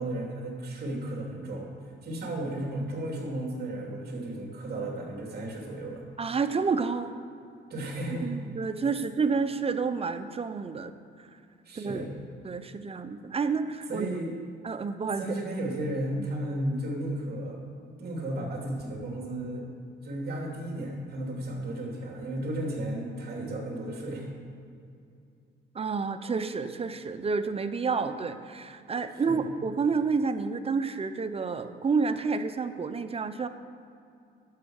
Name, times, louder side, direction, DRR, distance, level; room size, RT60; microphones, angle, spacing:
voice 1, 0.0-1.7 2.0-6.0 7.7-8.3 11.6-12.1 13.9-14.3 15.2-17.6 18.0-19.6 20.0-24.3 29.2-29.4, right 1 dB, 50° right, -1 dB, 3.0 m, -34 dB
voice 2, 6.2-7.1 8.2-10.9 11.8-12.1 12.4-14.1 14.6-15.2 16.2-16.3 25.7-33.5, right 5 dB, 30° right, 10 dB, 0.7 m, -29 dB
11.5 x 6.9 x 6.5 m, 2.4 s
cardioid pair, 90°, 20 cm